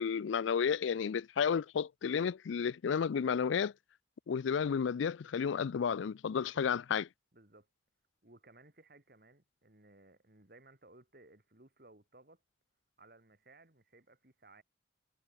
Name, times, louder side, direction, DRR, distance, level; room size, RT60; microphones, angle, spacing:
voice 1, 0.0-3.7 4.3-7.1, left 6 dB, 85° left, 0.4 m, -32 dB
voice 2, 6.4-6.8 7.3-7.7 8.2-12.4 13.0-14.6, right 2 dB, 50° right, 2.3 m, -60 dB
head